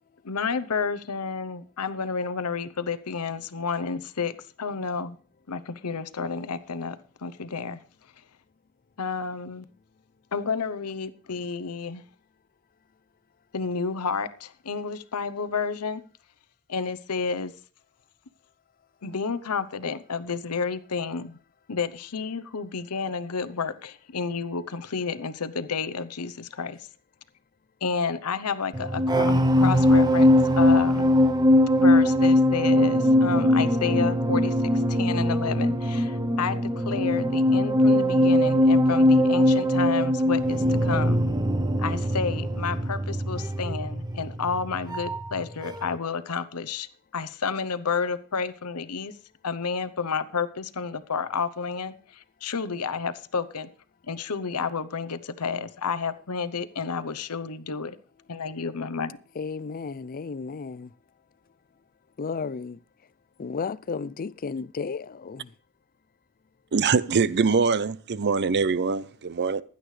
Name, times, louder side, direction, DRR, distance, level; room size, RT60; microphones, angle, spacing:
voice 1, 0.2-5.2 5.5-7.8 9.0-9.7 10.3-12.0 13.5-16.0 16.7-17.5 19.0-21.4 21.7-26.8 27.8-31.1 31.8-41.2 41.8-46.9 47.1-49.1 49.4-53.7 54.1-57.9 58.3-59.2, left 5 dB, 90° left, 0.9 m, -30 dB
sound 1, 28.7-45.4 45.6-46.0, left 1 dB, 20° right, 0.8 m, -21 dB
voice 2, 59.4-60.9 62.2-62.8 63.4-65.5, left 5 dB, 40° left, 0.4 m, -33 dB
voice 3, 66.7-69.6, right 5 dB, 50° right, 0.6 m, -23 dB
16.0 x 11.0 x 3.3 m
head